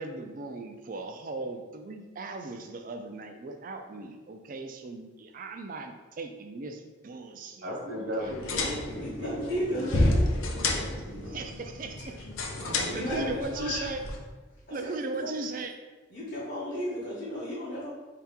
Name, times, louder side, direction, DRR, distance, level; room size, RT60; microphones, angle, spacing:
voice 1, 0.0-8.4 11.3-12.1 12.9-14.0 14.7-15.7, right 3 dB, 40° right, 6 dB, 0.4 m, -38 dB
voice 2, 7.6-11.4 12.5-13.3, equal, 60° right, -3 dB, 1.1 m, -38 dB
sound 1, 8.2-14.2, left 2 dB, 85° left, 0.6 m, -30 dB
voice 3, 8.8-10.3 12.0-12.1 12.9-13.9 14.7-15.3 16.1-17.9, equal, 50° left, -8 dB, 1.0 m, -34 dB
4.8 x 2.8 x 3.5 m, 1.3 s
head